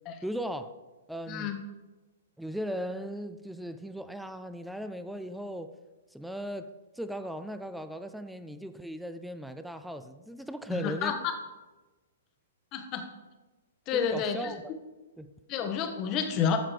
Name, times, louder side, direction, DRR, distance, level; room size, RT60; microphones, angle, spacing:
voice 1, 0.2-0.7 1.1-1.5 2.4-5.7 6.1-11.2 13.9-14.6 15.2-15.3, equal, ahead, 10 dB, 0.4 m, -37 dB
voice 2, 10.7-11.3 12.7-13.1 13.9-14.5 15.5-16.6, left 7 dB, 30° left, 7 dB, 1.0 m, -29 dB
13.5 x 7.3 x 3.3 m, 1.2 s
figure-of-eight pair, 110°, 0 cm